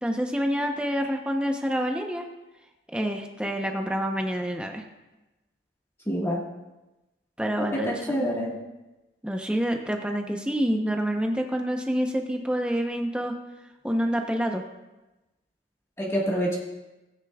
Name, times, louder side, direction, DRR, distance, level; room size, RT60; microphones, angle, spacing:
voice 1, 0.0-2.3 2.9-4.8 7.4-8.3 9.2-13.4 13.8-14.6, equal, 5° right, 3 dB, 0.7 m, -27 dB
voice 2, 6.1-6.4 7.6-8.6 16.0-16.6, equal, 15° left, -4 dB, 1.5 m, -27 dB
17.0 x 9.6 x 2.3 m, 1.0 s
head